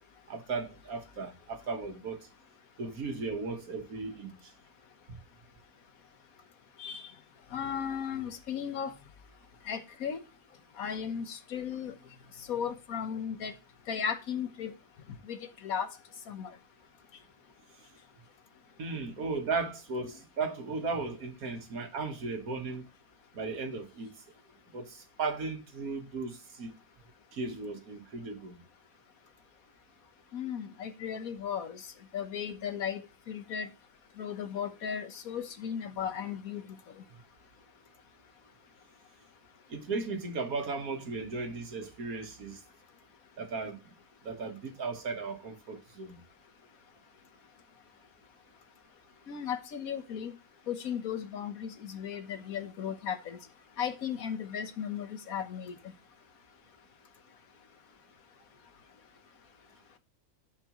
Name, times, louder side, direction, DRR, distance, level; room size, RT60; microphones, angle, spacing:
voice 1, 0.3-2.3 2.8-4.5 5.1-5.2 18.8-22.9 23.3-24.1 24.7-26.7 27.3-28.6 39.7-42.6 43.4-43.8 44.2-46.2, right 4 dB, 75° right, 1.9 m, -36 dB
voice 2, 7.5-9.0 9.7-10.2 10.8-11.9 12.5-13.5 13.9-14.7 15.2-15.9 16.3-16.5 30.3-31.8 32.1-33.7 34.2-36.8 49.3-50.3 50.7-53.4 53.8-55.8, left 8 dB, 70° left, 1.5 m, -36 dB
14.0 x 5.3 x 3.0 m
omnidirectional pair, 1.5 m